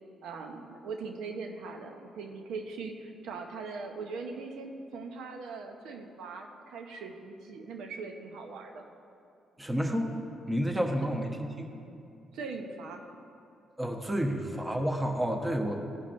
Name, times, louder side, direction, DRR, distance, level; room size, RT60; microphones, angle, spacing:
voice 1, 0.2-8.9 12.3-13.0, right 4 dB, 85° right, 4 dB, 0.8 m, -40 dB
voice 2, 9.6-10.2 10.5-11.7 13.8-15.8, equal, 15° right, 2 dB, 1.0 m, -30 dB
16.5 x 5.4 x 2.6 m, 2.6 s
cardioid pair, 90°, 0 cm